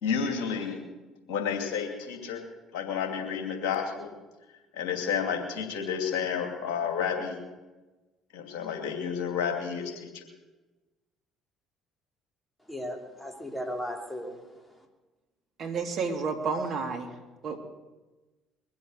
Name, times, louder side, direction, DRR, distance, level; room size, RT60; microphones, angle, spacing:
voice 1, 0.0-0.8 1.3-2.4 2.7-4.1 4.7-7.4 8.3-10.2, left 7 dB, 70° left, 3 dB, 2.7 m, -31 dB
voice 2, 12.7-14.9, equal, 5° left, 2 dB, 3.0 m, -37 dB
voice 3, 15.6-17.2 17.4-17.6, right 4 dB, 55° right, 3 dB, 2.3 m, -30 dB
22.0 x 7.8 x 6.5 m, 1.2 s
hypercardioid pair, 55°, 0 cm